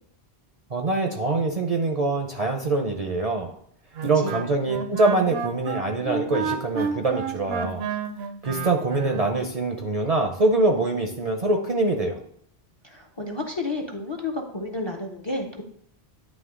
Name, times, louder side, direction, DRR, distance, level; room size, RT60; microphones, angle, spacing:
voice 1, 0.7-3.5 4.0-7.8 8.4-12.2, right 2 dB, 45° right, 3 dB, 0.6 m, -24 dB
Wind instrument woodwind instrument, 3.9-9.3, right 6 dB, 70° right, 0.8 m, -31 dB
voice 2, 12.8-15.6, left 2 dB, 35° left, 3 dB, 0.5 m, -31 dB
9.4 x 3.1 x 3.6 m, 0.67 s
omnidirectional pair, 1.1 m